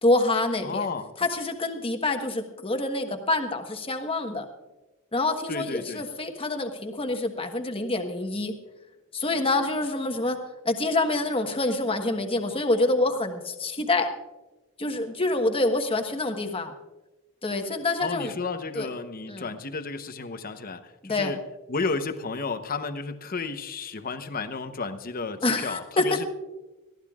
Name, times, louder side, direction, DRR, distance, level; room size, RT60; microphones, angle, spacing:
voice 1, 0.0-0.9 1.2-4.4 5.1-8.5 9.1-10.4 10.6-14.1 14.8-16.7 17.4-18.3 18.7-18.9 19.3-19.5 21.0-21.3 25.4-26.2, left 2 dB, 25° left, 1.3 m, -26 dB
voice 2, 0.6-1.1 5.5-6.0 18.0-21.4 21.7-26.2, left 4 dB, 45° left, 0.9 m, -32 dB
22.5 x 15.0 x 2.4 m
head